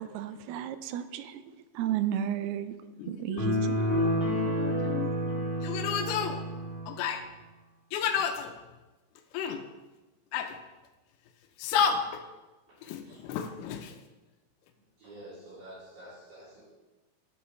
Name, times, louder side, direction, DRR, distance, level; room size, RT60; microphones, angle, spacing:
voice 1, 0.0-1.4 1.7-2.8 3.0-3.9, right 10 dB, 80° right, 11 dB, 2.3 m, -33 dB
voice 2, 3.0-5.1 5.6-6.5 6.9-7.3 7.9-8.6 9.3-9.6 10.3-10.6 11.6-12.2 12.8-14.0, left 7 dB, 80° left, 6 dB, 2.5 m, -32 dB
sound 1, 3.4-6.9, equal, 35° left, 1.4 m, -29 dB
voice 3, 13.0-13.4 15.0-16.6, right 1 dB, 60° right, -13 dB, 5.1 m, -48 dB
13.0 x 6.2 x 3.1 m, 1.1 s
omnidirectional pair, 4.7 m